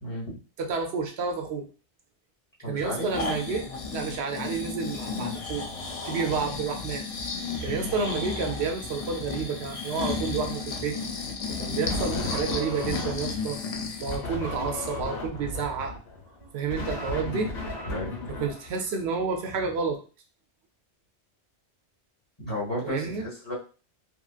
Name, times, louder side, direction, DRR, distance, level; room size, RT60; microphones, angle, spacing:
voice 1, 0.0-0.3 2.6-3.1 7.6-7.9 17.8-18.1 22.4-23.5, left 1 dB, 25° left, -7 dB, 1.6 m, -33 dB
voice 2, 0.6-1.7 2.7-7.0 7.6-11.0 11.5-13.6 14.0-15.9 16.5-17.5 18.4-20.0 22.8-23.2, right 5 dB, 80° right, 4 dB, 0.9 m, -30 dB
Breathing, 2.8-14.2 14.7-14.8, left 4 dB, 55° left, 0.4 m, -33 dB
sound 1, 11.9-13.5 14.1-19.2, left 1 dB, 70° left, 1.3 m, -35 dB
2.9 x 2.7 x 2.4 m, 0.35 s
omnidirectional pair, 1.1 m